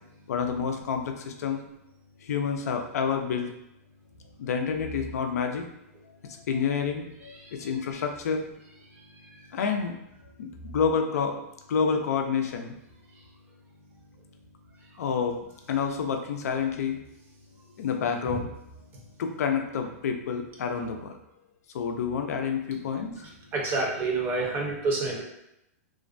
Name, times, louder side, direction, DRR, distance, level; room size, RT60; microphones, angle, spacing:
voice 1, 0.3-1.6 2.2-3.5 4.4-5.7 6.2-8.5 9.5-9.9 10.4-11.4 11.7-12.7 15.0-15.4 15.7-17.0 17.8-18.5 19.2-21.2 21.7-23.1, left 6 dB, 80° left, 4 dB, 0.4 m, -28 dB
voice 2, 23.5-25.2, right 3 dB, 25° right, -2 dB, 0.6 m, -27 dB
2.4 x 2.1 x 2.5 m, 0.83 s
hypercardioid pair, 145°, 8 cm